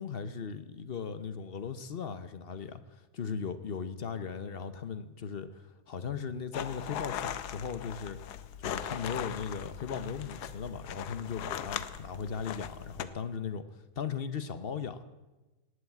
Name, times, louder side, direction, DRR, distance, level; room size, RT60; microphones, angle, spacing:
voice 1, 0.0-8.3 8.6-13.6 14.0-15.0, left 6 dB, 50° left, 11 dB, 0.7 m, -38 dB
sound 1, 6.5-13.1, left 10 dB, 70° left, 1.3 m, -39 dB
18.5 x 8.2 x 8.5 m, 1.1 s
omnidirectional pair, 1.9 m